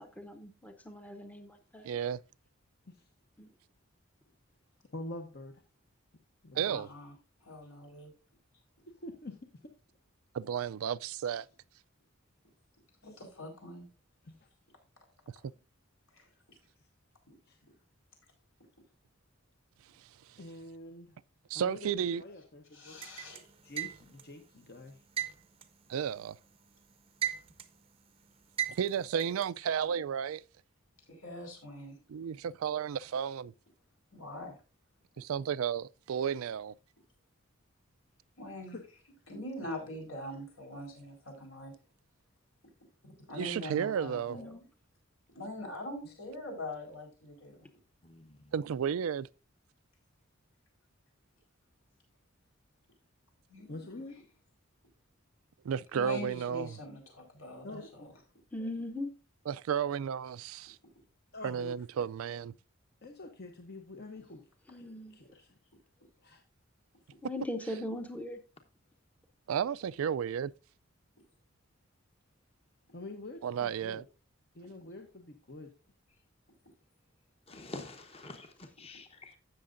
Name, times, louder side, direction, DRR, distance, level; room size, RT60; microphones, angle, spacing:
voice 1, 0.0-1.8 3.4-3.5 44.3-44.6 58.5-59.1 64.7-65.2 67.2-68.4, left 1 dB, 5° left, 0.7 m, -40 dB
voice 2, 1.8-2.2 6.5-6.9 10.3-11.5 21.5-22.2 25.9-26.4 28.8-30.4 32.1-33.5 35.2-36.7 43.4-44.4 48.5-49.3 55.6-56.8 59.5-60.8 61.4-62.5 69.5-70.5 73.4-74.0, right 8 dB, 90° right, 0.3 m, -33 dB
voice 3, 4.9-5.6 6.4-6.8 9.0-9.5 13.0-13.2 14.2-14.5 16.8-16.9 17.5-17.6 20.4-21.2 21.5-23.0 23.6-25.0 38.7-38.8 40.3-40.4 46.0-46.1 53.7-54.2 57.6-58.2 58.6-58.7 61.3-61.8 63.0-64.4 64.7-65.6 66.2-66.4 72.9-74.0 74.5-75.7, left 2 dB, 50° left, 0.9 m, -46 dB
voice 4, 6.6-7.1 7.4-8.1 13.0-13.9 16.1-16.2 22.7-23.4 31.1-32.0 34.1-34.6 38.4-38.8 39.3-41.7 43.3-44.6 45.3-47.7 53.5-53.9 55.9-57.8, left 1 dB, 80° left, 4.4 m, -43 dB
sound 1, 23.0-24.3 25.2-26.6 26.9-27.8 28.6-29.5, right 10 dB, 25° right, 0.6 m, -36 dB
voice 5, 48.0-48.4 77.5-79.4, left 2 dB, 30° left, 1.0 m, -47 dB
16.0 x 6.6 x 2.5 m
head